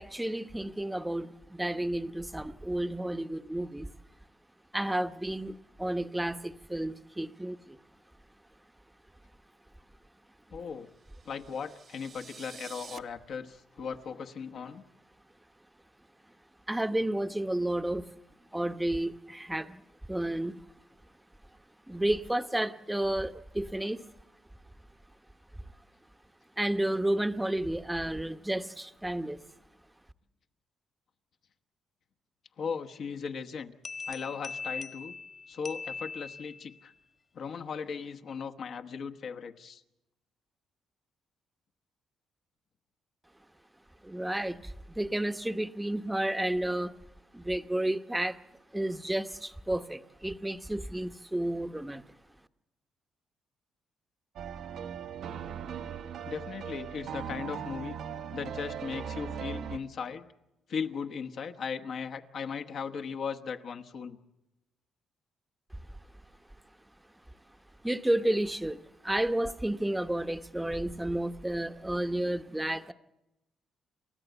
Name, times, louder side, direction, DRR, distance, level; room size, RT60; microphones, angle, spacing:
voice 1, 0.0-3.9 4.7-7.8 16.7-18.1 18.5-19.8 20.1-20.6 21.9-24.0 26.6-29.4 44.0-46.9 47.3-48.4 48.7-52.1 67.8-72.9, right 1 dB, 10° right, 9 dB, 0.9 m, -31 dB
voice 2, 10.5-10.9 11.2-14.8 32.6-33.7 34.1-35.2 35.5-36.9 37.3-39.8 56.2-58.0 58.3-60.3 60.7-64.2, left 6 dB, 65° left, 6 dB, 1.2 m, -37 dB
sound 1, 11.1-13.0, right 6 dB, 50° right, 0.9 m, -49 dB
sound 2, 33.8-36.8, left 4 dB, 40° left, 1.5 m, -40 dB
sound 3, 54.4-59.8, right 8 dB, 75° right, 1.1 m, -39 dB
29.0 x 13.5 x 8.1 m, 0.94 s
cardioid pair, 90°, 0 cm